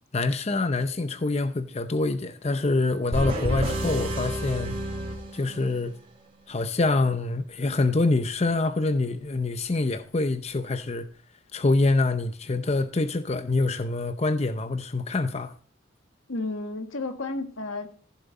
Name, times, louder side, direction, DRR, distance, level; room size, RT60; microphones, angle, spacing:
voice 1, 0.1-4.7 5.3-5.9 6.5-11.1 11.5-15.5, left 3 dB, 30° left, 0.6 m, -25 dB
sound 1, 3.1-5.9, right 1 dB, 30° right, 2.3 m, -30 dB
voice 2, 16.3-18.0, left 2 dB, 85° left, 1.7 m, -32 dB
15.0 x 7.4 x 4.1 m
head